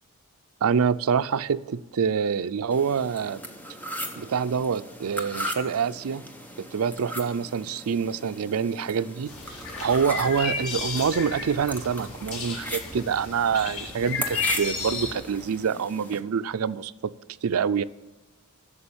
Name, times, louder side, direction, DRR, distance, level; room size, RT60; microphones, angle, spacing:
voice 1, 0.6-3.4 4.2-6.2 6.6-16.9 17.4-17.8, right 6 dB, 80° right, 0.4 m, -26 dB
sound 1, 2.7-16.2, equal, 10° left, 1.0 m, -38 dB
sound 2, 9.3-15.1, left 4 dB, 85° left, 2.6 m, -33 dB
11.5 x 7.0 x 8.6 m
head